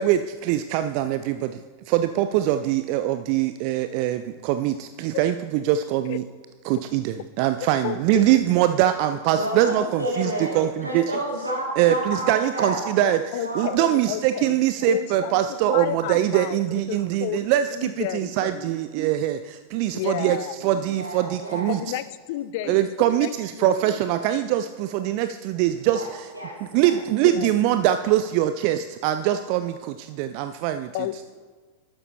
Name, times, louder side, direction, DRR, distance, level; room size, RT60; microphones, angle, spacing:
voice 1, 0.0-1.6 1.9-6.2 6.7-11.1 11.8-21.8 22.7-26.3 26.6-30.9, right 12 dB, 45° right, 9 dB, 0.3 m, -23 dB
voice 2, 7.8-8.2 10.5-10.6 13.3-14.6 14.9-15.4 15.7-16.6 16.9-17.4 17.7-18.7 19.9-20.6 21.7-22.9 23.2-23.3 23.6-24.0 27.2-27.5 30.9-31.3, left 13 dB, 50° left, 15 dB, 0.3 m, -31 dB
voice 3, 9.3-10.6 10.8-12.9 13.4-13.7 20.9-21.8 25.9-26.1 26.3-27.0, right 1 dB, 85° right, -3 dB, 2.3 m, -30 dB
12.0 x 8.7 x 2.8 m, 1.5 s
figure-of-eight pair, 90°, 0 cm